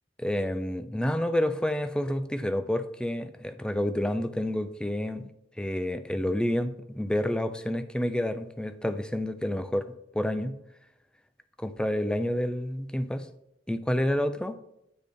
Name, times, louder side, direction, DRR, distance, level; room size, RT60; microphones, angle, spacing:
voice 1, 0.2-5.3 5.6-9.8 10.1-10.6 11.6-13.3 13.7-14.6, left 1 dB, 5° left, 10 dB, 0.4 m, -29 dB
9.9 x 3.9 x 3.4 m, 0.82 s
head